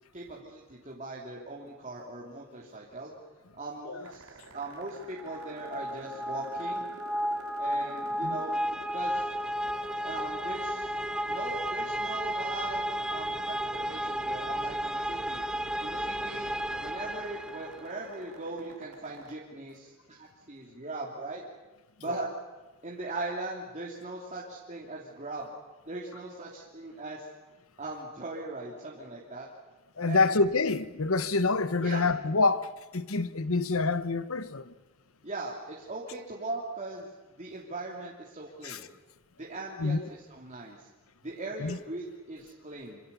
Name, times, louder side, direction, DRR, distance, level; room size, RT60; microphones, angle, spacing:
voice 1, 0.1-3.1 3.5-6.9 7.6-8.6 8.9-9.3 10.0-10.9 11.2-15.4 15.8-16.5 16.8-21.4 22.0-22.3 22.8-25.5 25.8-27.3 27.8-29.5 30.0-30.4 31.8-32.1 35.2-37.1 37.4-38.9 39.4-40.9 41.2-43.0, right 2 dB, 35° right, 3.2 m, -40 dB
sound 1, 4.0-19.4, right 3 dB, 75° right, 3.7 m, -50 dB
sound 2, 5.2-18.0, equal, 5° right, 0.8 m, -33 dB
voice 2, 30.0-34.7 38.6-38.8 39.8-40.0 41.6-41.8, left 3 dB, 65° left, 1.1 m, -27 dB
26.5 x 26.5 x 7.1 m
head